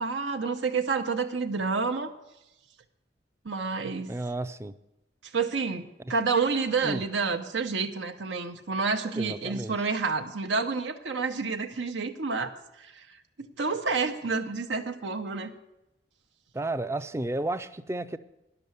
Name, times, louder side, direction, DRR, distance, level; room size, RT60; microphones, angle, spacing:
voice 1, 0.0-2.1 3.4-4.1 5.2-15.5, right 4 dB, 90° right, 4 dB, 0.8 m, -29 dB
voice 2, 4.1-4.7 6.8-7.0 9.2-9.8 16.5-18.2, right 2 dB, 15° right, 12 dB, 0.4 m, -32 dB
10.5 x 6.9 x 9.3 m, 0.92 s
head